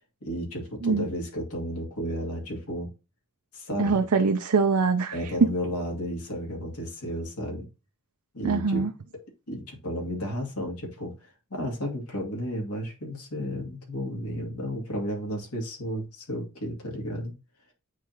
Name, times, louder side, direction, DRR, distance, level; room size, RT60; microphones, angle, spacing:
voice 1, 0.2-2.9 3.5-4.0 5.1-7.7 8.3-8.9 9.5-17.3, equal, 80° left, 2.4 m, -33 dB
voice 2, 3.8-5.2 8.4-8.9, right 4 dB, 75° right, 0.6 m, -23 dB
9.1 x 3.7 x 2.8 m
head